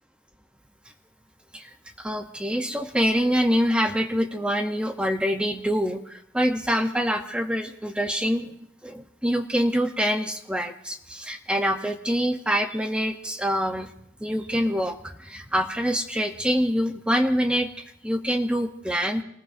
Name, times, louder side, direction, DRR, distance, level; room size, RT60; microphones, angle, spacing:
voice 1, 1.5-8.6 8.8-13.9 14.2-19.2, equal, 5° right, 5 dB, 0.7 m, -25 dB
28.0 x 19.5 x 2.6 m, 0.74 s
head